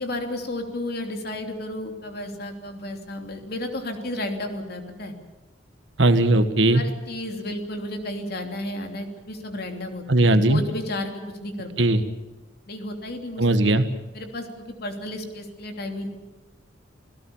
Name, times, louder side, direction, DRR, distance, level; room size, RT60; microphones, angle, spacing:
voice 1, 0.0-5.1 6.7-11.9 12.7-13.4 14.1-16.1, left 1 dB, 50° left, 4 dB, 3.2 m, -33 dB
voice 2, 6.0-6.8 10.1-10.6 11.8-12.0 13.4-13.9, right 2 dB, 70° right, 10 dB, 1.5 m, -18 dB
27.5 x 17.5 x 7.2 m, 1.2 s
head